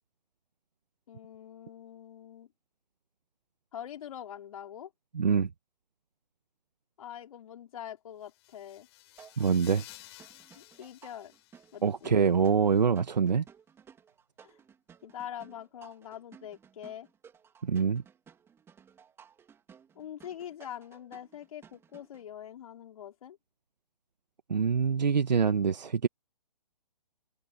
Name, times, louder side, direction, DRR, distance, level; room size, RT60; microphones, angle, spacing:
voice 1, 1.1-2.5 3.7-4.9 7.0-8.9 10.5-11.3 11.7-12.2 14.4-14.6 15.0-17.1 20.0-23.4, left 10 dB, 55° left, 3.9 m, -44 dB
voice 2, 5.1-5.5 9.4-9.8 11.8-13.4 17.6-18.0 24.5-26.1, right 6 dB, 85° right, 1.5 m, -25 dB
sound 1, 8.2-12.1, left 17 dB, 40° left, 6.1 m, -53 dB
sound 2, 9.2-22.2, right 7 dB, 10° right, 3.0 m, -57 dB
hypercardioid pair, 145°, 21 cm